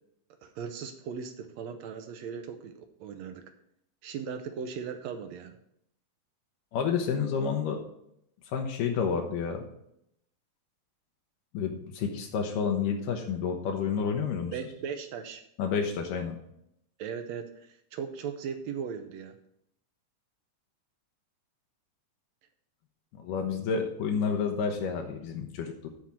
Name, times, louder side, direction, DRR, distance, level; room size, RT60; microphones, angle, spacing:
voice 1, 0.4-3.4 4.0-5.6 14.5-15.4 17.0-19.4, right 6 dB, 80° right, 7 dB, 1.6 m, -38 dB
voice 2, 6.7-7.8 8.5-9.6 11.5-14.5 15.6-16.4 23.2-25.9, left 6 dB, 80° left, 2 dB, 2.5 m, -30 dB
9.6 x 4.3 x 7.3 m, 0.75 s
omnidirectional pair, 3.8 m